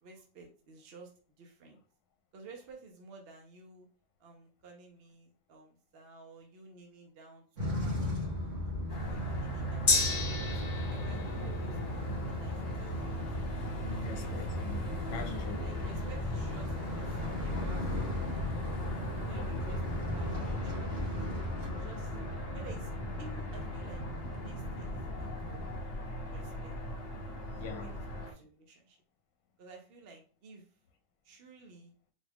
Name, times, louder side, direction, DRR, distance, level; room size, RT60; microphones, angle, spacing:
voice 1, 0.0-1.1 1.4-1.8 2.3-3.9 4.2-8.6 9.1-13.2 13.9-14.6 15.6-18.7 19.3-19.8 20.1-22.1 22.5-22.9 23.2-24.0 24.3-24.9 25.2-25.6 26.3-26.8 27.5-29.0 29.6-30.7 31.2-31.9, right 3 dB, 55° right, 0.8 m, -53 dB
sound 1, 7.6-25.8, left 1 dB, 75° right, 2.2 m, -37 dB
sound 2, 8.9-28.3, equal, 55° left, 1.2 m, -39 dB
Gong, 9.9-17.6 18.0-18.1, left 3 dB, 40° left, 0.7 m, -36 dB
voice 2, 14.0-15.7 27.6-27.9, left 5 dB, 80° left, 0.9 m, -43 dB
4.1 x 2.3 x 3.4 m
omnidirectional pair, 1.3 m